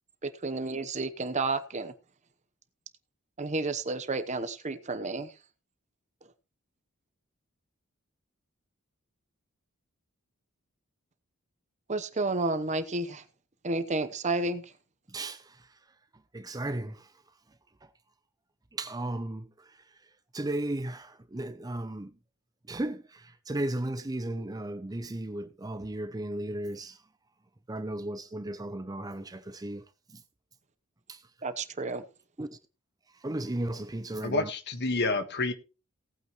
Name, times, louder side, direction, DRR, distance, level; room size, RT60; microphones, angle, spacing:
voice 1, 0.2-1.9 3.4-5.3 11.9-13.2 13.6-14.7 31.4-32.0, right 3 dB, 35° right, 0.9 m, -31 dB
voice 2, 15.1-15.7 16.3-17.1 18.7-19.5 20.3-22.1 22.7-27.0 27.7-29.8 30.1-30.2 31.1-31.2 32.4-32.5 33.2-34.5, right 1 dB, 15° right, 0.6 m, -35 dB
voice 3, 34.2-35.5, left 3 dB, 50° left, 1.4 m, -28 dB
18.0 x 8.8 x 3.1 m
head